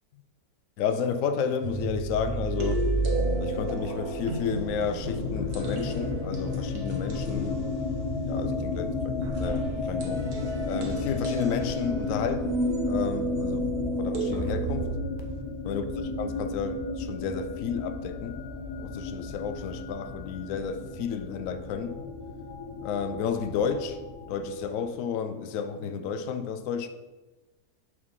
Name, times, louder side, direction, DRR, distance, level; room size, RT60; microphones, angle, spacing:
voice 1, 0.8-2.9 3.4-7.6 8.3-10.3 10.6-12.6 12.9-13.7 14.0-15.0 15.6-18.4 18.8-22.0 22.8-24.0 24.3-26.9, left 7 dB, 70° left, 0.9 m, -32 dB
sound 1, 1.6-15.0, right 2 dB, 50° right, 1.0 m, -32 dB
sound 2, 5.0-24.9, left 3 dB, 85° left, 1.3 m, -33 dB
6.2 x 4.8 x 3.7 m
omnidirectional pair, 1.6 m